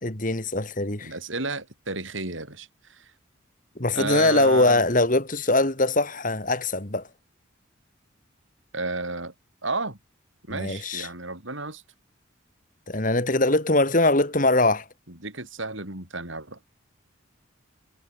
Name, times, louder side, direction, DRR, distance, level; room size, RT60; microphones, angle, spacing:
voice 1, 0.0-1.1 3.8-7.0 10.5-11.1 12.9-14.8, left 2 dB, 40° left, 2.6 m, -22 dB
voice 2, 1.0-3.1 3.9-4.8 8.7-9.3 9.6-10.0 10.5-11.8 15.1-16.6, right 3 dB, 70° right, 6.6 m, -32 dB
head